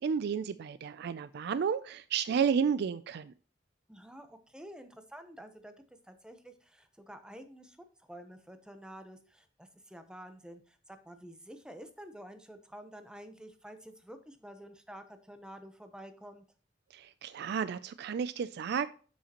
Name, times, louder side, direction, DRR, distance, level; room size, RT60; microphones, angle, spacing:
voice 1, 0.0-3.3 16.9-18.9, right 7 dB, 60° right, 15 dB, 0.3 m, -32 dB
voice 2, 3.9-5.7 6.0-16.4, equal, 5° right, 8 dB, 0.8 m, -49 dB
7.4 x 7.1 x 2.9 m, 0.40 s
head